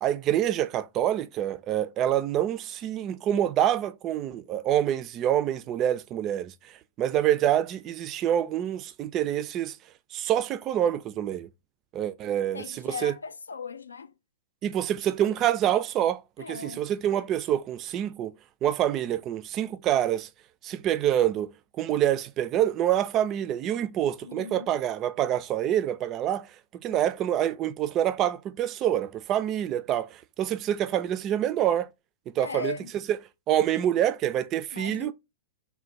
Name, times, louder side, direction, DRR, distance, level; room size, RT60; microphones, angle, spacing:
voice 1, 0.0-6.5 7.0-9.8 10.1-11.5 11.9-13.1 14.6-18.3 18.6-20.3 20.6-26.5 26.8-31.9 32.4-32.8 33.1-33.2 33.5-35.1, right 11 dB, 30° right, 0.4 m, -26 dB
voice 2, 12.5-14.1 16.4-16.8 24.2-24.7 26.9-27.0 32.4-32.9 34.7-35.1, left 5 dB, 80° left, 0.4 m, -38 dB
3.4 x 2.2 x 4.0 m
figure-of-eight pair, 110°, 0 cm